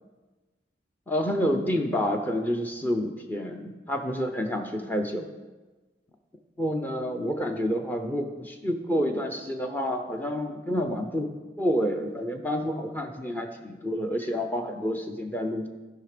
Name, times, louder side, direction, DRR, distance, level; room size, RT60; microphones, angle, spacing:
voice 1, 1.1-5.3 6.6-11.3 11.6-15.7, equal, 10° left, 4 dB, 0.6 m, -28 dB
12.5 x 5.7 x 5.0 m, 1.2 s
head